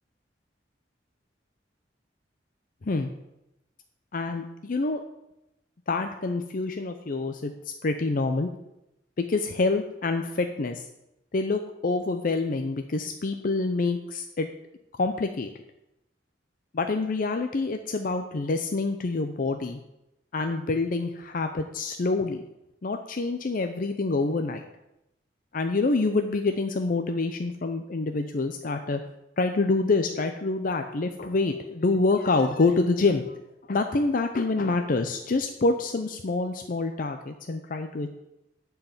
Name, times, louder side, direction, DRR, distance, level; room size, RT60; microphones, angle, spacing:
voice 1, 4.1-5.0 5.9-7.5 7.8-8.5 9.2-10.9 11.3-14.5 15.0-15.5 16.7-19.8 20.3-22.4 22.8-24.6 25.5-29.0 29.4-33.4 33.7-38.1, left 3 dB, 50° left, 6 dB, 0.6 m, -26 dB
11.0 x 4.7 x 7.2 m, 0.90 s
head